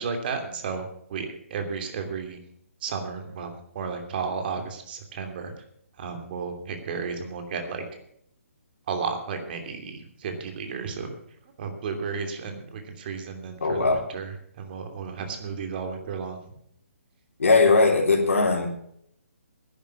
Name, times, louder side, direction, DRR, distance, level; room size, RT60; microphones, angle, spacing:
voice 1, 0.0-2.4 2.8-5.5 6.0-7.8 8.9-11.1 11.6-14.3 14.6-16.4, right 5 dB, 40° right, 5 dB, 2.9 m, -33 dB
voice 2, 13.6-14.0 17.4-18.7, left 3 dB, 75° left, 0 dB, 3.7 m, -19 dB
10.5 x 10.5 x 7.2 m, 0.69 s
hypercardioid pair, 145°, 8 cm